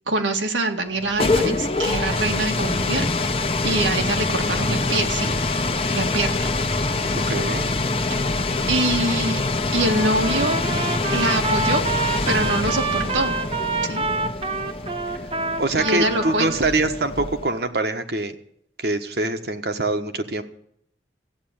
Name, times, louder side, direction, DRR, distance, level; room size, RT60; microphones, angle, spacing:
voice 1, 0.1-3.1 3.6-5.3 5.9-6.5 8.1-8.2 8.7-9.4 9.7-10.6 11.1-11.8 12.3-13.4 13.8-14.1 15.8-16.5, right 2 dB, 90° right, 4 dB, 2.0 m, -24 dB
sound 1, 0.9-17.6, left 3 dB, 30° left, 1.1 m, -25 dB
voice 2, 7.1-7.7 15.6-18.4 18.8-20.4, right 2 dB, 60° right, 7 dB, 1.4 m, -24 dB
Trumpet, 9.8-16.6, right 3 dB, 30° right, 1.1 m, -27 dB
15.5 x 9.1 x 8.9 m, 0.70 s
head